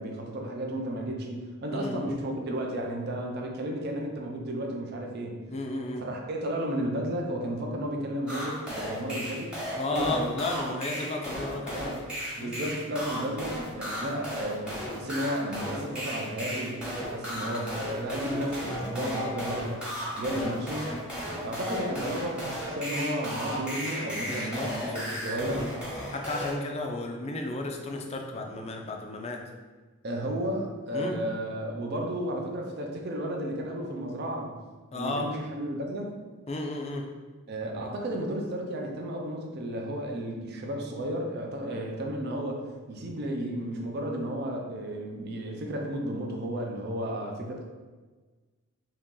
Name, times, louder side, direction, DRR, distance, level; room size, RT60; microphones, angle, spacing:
voice 1, 0.0-5.4 6.0-10.3 11.7-11.9 12.4-19.8 20.2-20.9 21.4-25.7 30.0-34.5 34.9-36.1 37.5-47.6, right 1 dB, 50° right, 1 dB, 0.4 m, -33 dB
voice 2, 1.7-2.1 5.5-6.0 9.8-12.1 12.4-12.7 18.9-19.4 24.2-25.7 26.1-29.4 30.9-31.2 34.9-35.3 36.5-37.1, left 2 dB, 30° left, 2 dB, 0.4 m, -34 dB
sound 1, 8.3-26.5, equal, 5° right, 0.8 m, -35 dB
2.9 x 2.8 x 3.6 m, 1.3 s
head